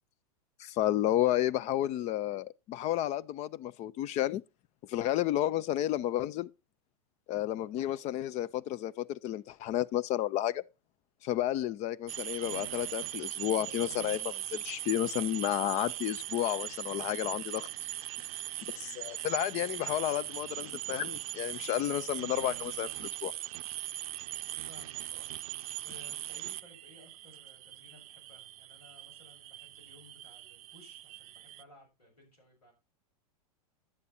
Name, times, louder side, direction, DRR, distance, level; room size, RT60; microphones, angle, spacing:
voice 1, 0.6-4.4 4.9-6.5 7.3-10.6 11.2-17.7 18.7-23.3, left 13 dB, 35° left, 0.5 m, -31 dB
sound 1, 12.1-31.6, right 14 dB, 60° right, 0.5 m, -40 dB
voice 2, 24.7-25.3 25.8-32.7, left 1 dB, 85° left, 7.0 m, -58 dB
11.0 x 8.4 x 4.3 m
hypercardioid pair, 105°, 20 cm